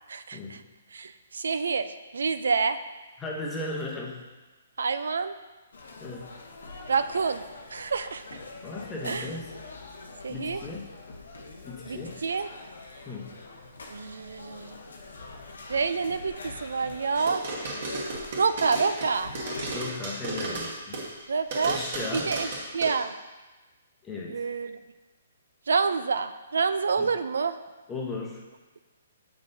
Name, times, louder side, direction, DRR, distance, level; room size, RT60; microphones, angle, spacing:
voice 1, 0.1-0.6 0.9-2.8 4.8-5.3 6.9-8.4 9.0-9.3 10.2-10.6 11.8-12.5 13.9-14.8 15.7-17.5 18.4-19.3 21.3-21.8 22.1-23.2 24.3-24.8 25.7-27.6, right 5 dB, 85° right, 11 dB, 0.3 m, -28 dB
voice 2, 3.2-4.2 6.0-6.4 8.6-9.6 10.3-10.9 11.6-12.2 13.1-13.3 19.7-21.0 21.6-22.3 24.0-24.4 27.0-27.1 27.9-28.4, left 3 dB, 10° left, -2 dB, 0.8 m, -36 dB
sound 1, 5.7-19.7, left 3 dB, 85° left, 0.8 m, -44 dB
sound 2, 17.2-21.2 21.5-22.9, right 2 dB, 45° right, 1.4 m, -34 dB
7.9 x 5.4 x 2.7 m, 1.2 s
hypercardioid pair, 165°, 0 cm